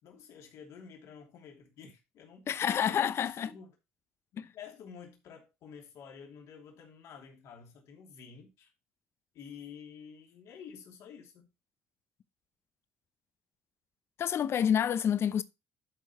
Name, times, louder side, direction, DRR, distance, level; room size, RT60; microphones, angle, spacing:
voice 1, 0.0-2.5 2.9-3.7 4.5-8.7 9.3-11.5, left 7 dB, 75° left, 3.0 m, -50 dB
voice 2, 2.5-3.5 4.4-4.5 14.2-15.4, left 8 dB, 55° left, 0.7 m, -28 dB
12.0 x 4.6 x 4.3 m
supercardioid pair, 80°, 5 cm